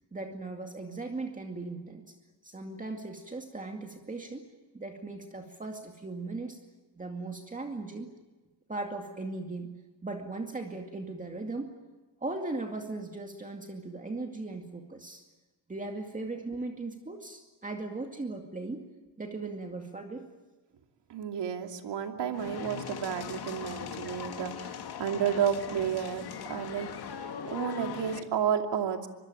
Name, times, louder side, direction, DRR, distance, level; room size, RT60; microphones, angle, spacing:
voice 1, 0.1-2.1 2.4-4.4 4.7-6.6 6.9-8.1 8.7-9.7 10.0-11.7 12.2-15.2 15.7-18.8 19.2-20.3, right 3 dB, 20° right, 3 dB, 2.2 m, -38 dB
voice 2, 21.1-26.9 27.5-29.1, right 8 dB, 70° right, 4 dB, 2.8 m, -31 dB
sound 1, 22.3-28.2, left 7 dB, 60° left, 2.2 m, -40 dB
24.5 x 22.5 x 9.0 m, 1.2 s
cardioid pair, 135°, 43 cm